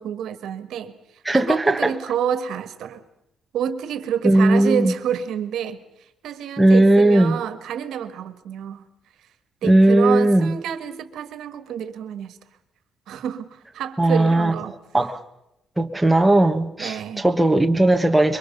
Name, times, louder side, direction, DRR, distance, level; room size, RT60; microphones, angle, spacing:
voice 1, 0.0-3.0 3.5-8.9 9.6-12.4 13.1-14.7 16.8-17.2, right 8 dB, 85° right, 1.6 m, -28 dB
voice 2, 1.2-1.9 4.2-4.9 6.6-7.4 9.6-10.5 14.0-14.5 14.9-15.2 15.8-18.4, right 1 dB, 5° right, 1.2 m, -17 dB
26.5 x 23.0 x 5.4 m
cardioid pair, 145°, 0 cm